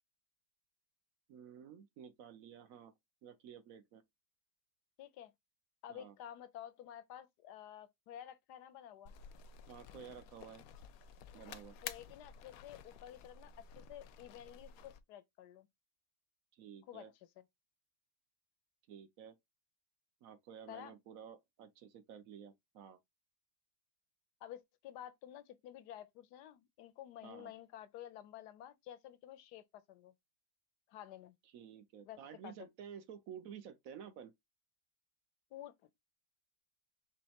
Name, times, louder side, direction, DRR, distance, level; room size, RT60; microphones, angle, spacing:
voice 1, 1.3-2.9 3.2-4.0 5.9-6.2 9.7-10.6 11.3-11.8 16.5-17.1 18.9-19.4 20.2-23.0 27.2-27.5 31.5-34.3, right 8 dB, 65° right, 1.0 m, -52 dB
voice 2, 5.0-5.3 5.8-9.1 11.8-15.7 16.9-17.1 20.7-21.0 24.4-30.1 30.9-31.3 32.0-32.5 35.5-36.0, left 11 dB, 85° left, 1.2 m, -51 dB
sound 1, 9.1-15.0, left 8 dB, 70° left, 0.9 m, -52 dB
5.4 x 3.2 x 2.9 m
omnidirectional pair, 1.7 m